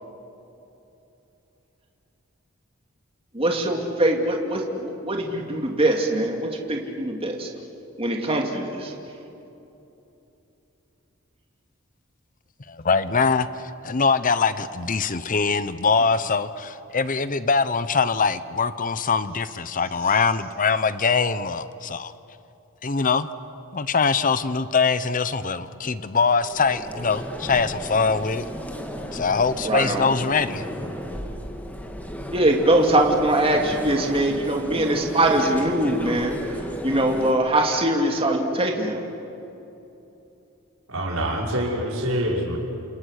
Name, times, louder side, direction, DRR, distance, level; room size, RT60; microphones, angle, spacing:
voice 1, 3.3-7.5 8.0-8.9 29.7-30.1 32.3-36.5 36.8-39.0, right 1 dB, 25° right, 1 dB, 2.4 m, -22 dB
voice 2, 12.7-22.1 22.8-23.3 23.7-28.4 29.1-30.6, left 5 dB, 40° left, 14 dB, 0.8 m, -23 dB
sound 1, 26.3-37.3, equal, 5° left, 2.0 m, -34 dB
voice 3, 40.9-42.6, equal, 70° right, -1 dB, 5.7 m, -25 dB
30.0 x 27.5 x 6.6 m, 2.9 s
head